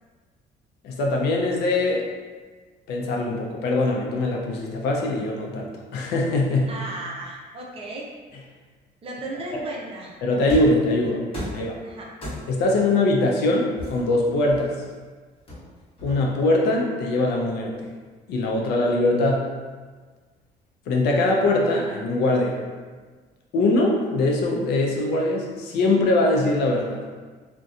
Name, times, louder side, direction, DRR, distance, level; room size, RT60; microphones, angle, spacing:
voice 1, 0.8-2.0 2.9-6.7 9.5-9.6 10.2-11.8 12.5-14.7 16.0-17.9 18.3-19.5 20.9-22.6 23.5-27.0, left 2 dB, 75° left, -1 dB, 0.5 m, -22 dB
voice 2, 6.7-8.1 9.0-10.4 10.7-10.8 11.8-12.1, right 2 dB, 35° right, -2 dB, 0.5 m, -35 dB
sound 1, 10.5-10.8 11.3-11.7 12.2-12.7 13.8-14.9 15.5-16.5, equal, 35° left, 1.0 m, -35 dB
2.6 x 2.2 x 2.4 m, 1.4 s
cardioid pair, 110°, 17 cm